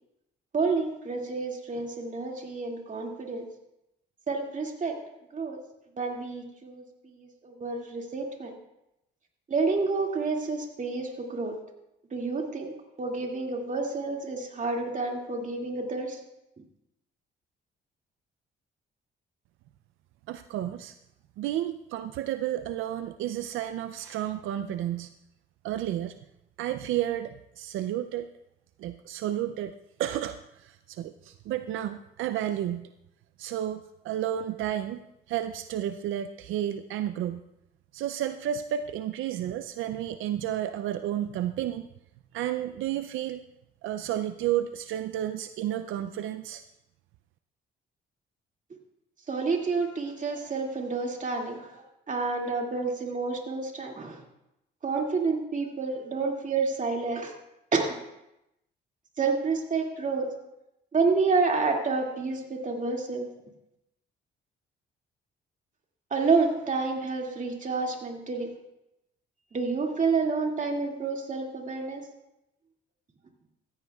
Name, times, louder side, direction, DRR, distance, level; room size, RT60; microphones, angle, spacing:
voice 1, 0.5-3.5 4.3-5.0 5.3-5.6 6.0-8.5 9.5-11.6 12.1-16.2 49.3-54.2 54.8-57.3 57.7-58.0 59.2-60.3 60.9-63.3 66.1-68.5 69.5-72.1, right 4 dB, 40° right, 1 dB, 2.2 m, -29 dB
voice 2, 20.3-20.9 21.4-25.1 25.6-26.2 26.6-28.3 28.8-32.9 33.4-35.0 35.3-37.5 37.9-41.9 42.3-43.4 43.8-46.6, right 11 dB, 80° right, 10 dB, 0.5 m, -31 dB
15.0 x 14.5 x 2.3 m, 0.88 s
cardioid pair, 90°, 20 cm